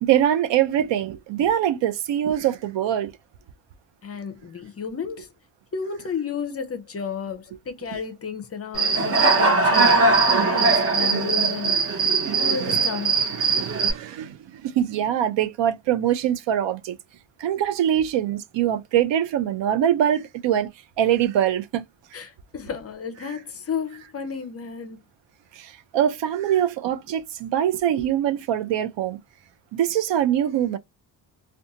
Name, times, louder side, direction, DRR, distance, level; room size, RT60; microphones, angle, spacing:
voice 1, 0.0-3.1 12.7-12.8 13.4-17.0 17.4-20.7 21.0-21.8 25.5-29.2 29.7-30.8, right 10 dB, 75° right, 0.5 m, -23 dB
voice 2, 4.0-5.3 5.7-13.2 22.1-25.0, left 6 dB, 35° left, 0.5 m, -33 dB
Human voice / Cricket, 8.7-13.9, right 3 dB, 30° right, 0.7 m, -20 dB
2.5 x 2.3 x 2.6 m
cardioid pair, 120°, 44 cm